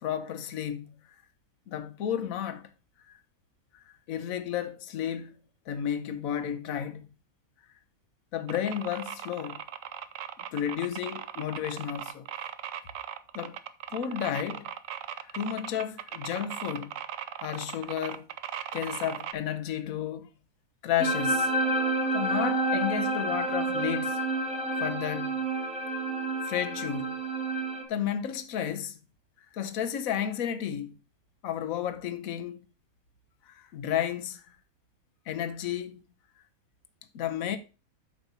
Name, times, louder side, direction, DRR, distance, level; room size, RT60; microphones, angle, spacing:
voice 1, 0.0-0.9 1.7-2.7 3.0-3.1 3.7-5.3 5.7-7.1 8.3-9.6 10.5-12.3 13.3-13.6 13.9-14.7 15.2-16.9 17.4-18.3 18.7-20.3 20.8-21.7 22.1-24.2 24.8-25.4 26.4-27.1 27.9-29.0 29.5-30.9 31.4-32.6 33.5-34.4 35.3-36.0 37.1-37.6, left 9 dB, 70° left, 1.2 m, -32 dB
sound 1, 8.5-19.3, right 10 dB, 70° right, 1.0 m, -38 dB
sound 2, 21.0-27.8, right 2 dB, 5° right, 1.2 m, -29 dB
8.1 x 5.3 x 4.2 m
omnidirectional pair, 1.5 m